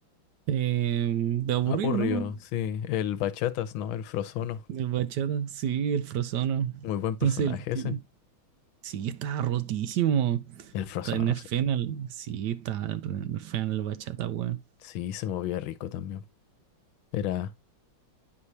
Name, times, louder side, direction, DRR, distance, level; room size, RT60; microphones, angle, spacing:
voice 1, 0.5-2.3 4.7-6.9 7.2-8.0 8.8-10.7 11.1-14.6, right 10 dB, 70° right, 1.0 m, -28 dB
voice 2, 1.7-4.6 6.8-7.9 10.7-11.3 14.8-16.2 17.1-17.5, left 11 dB, 75° left, 1.5 m, -31 dB
9.8 x 4.8 x 2.8 m
omnidirectional pair, 2.3 m